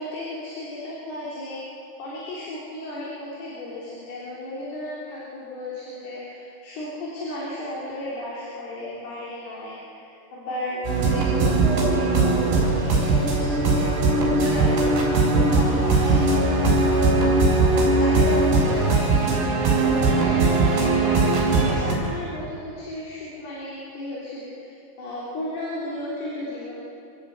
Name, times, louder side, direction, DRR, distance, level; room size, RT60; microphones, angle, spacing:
voice 1, 0.0-1.6 2.0-15.1 15.4-16.9 17.8-19.1 19.4-21.2 21.6-26.8, left 1 dB, 55° left, -7 dB, 5.4 m, -34 dB
sound 1, 10.8-21.9, right 3 dB, 60° right, 6.1 m, -20 dB
26.0 x 15.5 x 8.2 m, 2.6 s
omnidirectional pair, 5.6 m